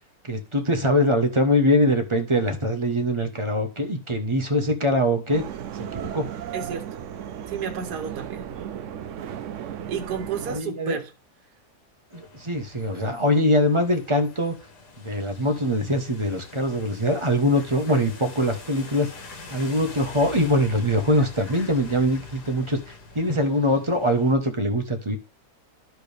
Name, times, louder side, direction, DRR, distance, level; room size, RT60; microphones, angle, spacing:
voice 1, 0.3-5.4 5.9-6.2 10.5-11.0 12.1-14.5 15.0-19.1 19.5-25.2, equal, 20° right, 1.0 m, -23 dB
sound 1, 5.3-10.6, right 9 dB, 65° right, 0.8 m, -35 dB
voice 2, 6.5-6.9 7.5-8.5 9.9-11.1, right 6 dB, 80° right, 1.6 m, -31 dB
sound 2, 12.1-24.3, left 3 dB, 85° left, 2.1 m, -44 dB
12.0 x 4.6 x 3.4 m
omnidirectional pair, 1.7 m